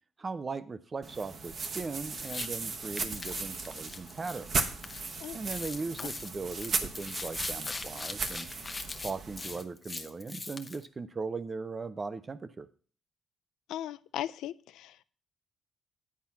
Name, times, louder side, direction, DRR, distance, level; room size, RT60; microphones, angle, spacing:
voice 1, 0.2-4.5 5.3-8.5 9.0-12.7, right 4 dB, 30° right, 0.7 m, -38 dB
sound 1, 1.0-9.6, right 4 dB, 45° right, 1.2 m, -37 dB
sound 2, 2.1-2.5 3.0-5.1 5.4-10.8, left 3 dB, 25° left, 0.8 m, -41 dB
voice 2, 13.7-15.0, left 12 dB, 85° left, 0.3 m, -38 dB
9.7 x 4.4 x 7.2 m
cardioid pair, 90°, 0 cm